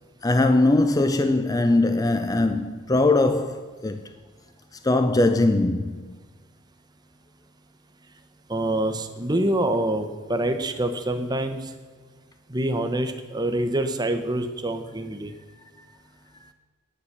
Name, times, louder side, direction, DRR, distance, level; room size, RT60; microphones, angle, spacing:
voice 1, 0.2-4.0 4.8-6.2, left 2 dB, 15° left, 0.4 m, -21 dB
voice 2, 8.5-11.7 12.5-15.3, right 1 dB, 20° right, 0.9 m, -26 dB
10.0 x 9.5 x 6.6 m
head